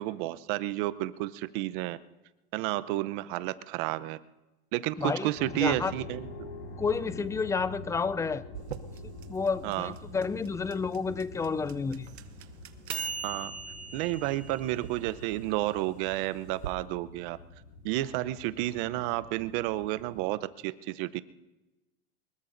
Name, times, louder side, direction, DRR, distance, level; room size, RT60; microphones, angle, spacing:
voice 1, 0.0-2.0 2.5-4.2 4.7-6.3 9.6-9.9 13.2-13.5 13.9-17.4 17.8-21.2, right 16 dB, 55° right, 14 dB, 0.8 m, -31 dB
voice 2, 5.0-5.3 5.5-5.9 6.8-8.4 9.3-12.1, left 5 dB, 10° left, 17 dB, 0.4 m, -30 dB
sound 1, 5.3-20.2, left 2 dB, 70° left, 4.8 m, -47 dB
sound 2, 8.5-16.7, right 7 dB, 90° right, 1.1 m, -41 dB
23.5 x 21.0 x 2.6 m, 1.0 s
hypercardioid pair, 110°, 32 cm